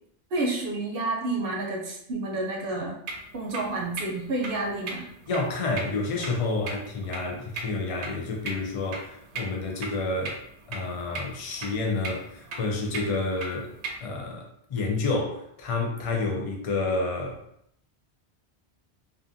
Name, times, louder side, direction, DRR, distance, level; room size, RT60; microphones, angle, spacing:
voice 1, 0.3-2.9 3.3-5.0, right 2 dB, 60° right, -1 dB, 0.7 m, -29 dB
sound 1, 3.1-14.0, right 3 dB, 90° right, 0.9 m, -39 dB
voice 2, 5.3-10.4 10.7-13.7 14.0-17.4, left 3 dB, 45° left, 0 dB, 0.4 m, -29 dB
2.5 x 2.4 x 2.5 m, 0.73 s
omnidirectional pair, 1.1 m